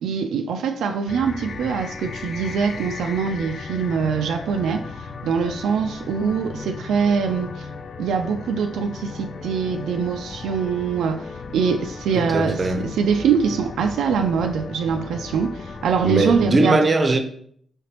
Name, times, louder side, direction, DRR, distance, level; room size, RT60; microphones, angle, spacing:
voice 1, 0.0-4.9 5.2-7.7 8.0-16.8, right 6 dB, 90° right, 0.3 m, -23 dB
sound 1, 1.1-16.4, left 4 dB, 50° left, 0.4 m, -36 dB
voice 2, 12.2-12.9 16.0-17.2, right 2 dB, 35° right, 0.6 m, -20 dB
4.8 x 3.2 x 2.9 m
cardioid pair, 80°, 0 cm